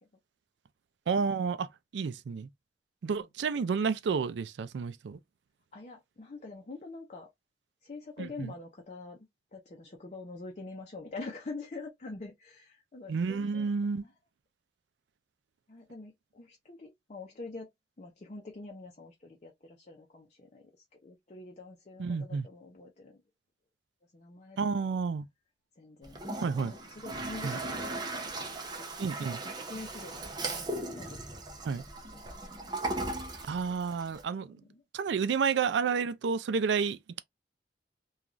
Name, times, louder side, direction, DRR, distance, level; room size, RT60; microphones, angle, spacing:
voice 1, 1.1-2.5 3.0-5.2 8.2-8.5 13.1-14.0 22.0-22.5 24.6-25.3 26.4-26.7 27.4-27.6 29.0-29.4 31.6-31.8 33.5-34.6 34.9-37.2, right 5 dB, 90° right, 0.4 m, -30 dB
voice 2, 5.7-7.3 7.8-9.2 9.5-14.1 15.7-17.7 18.0-23.2 24.1-24.9 25.8-28.0 28.8-30.6 30.9-31.7 32.1-32.7 33.8-33.9 34.3-34.8, left 3 dB, 40° left, 0.6 m, -46 dB
Toilet flush, 26.0-34.2, right 2 dB, 25° right, 0.6 m, -38 dB
3.0 x 2.3 x 2.4 m
head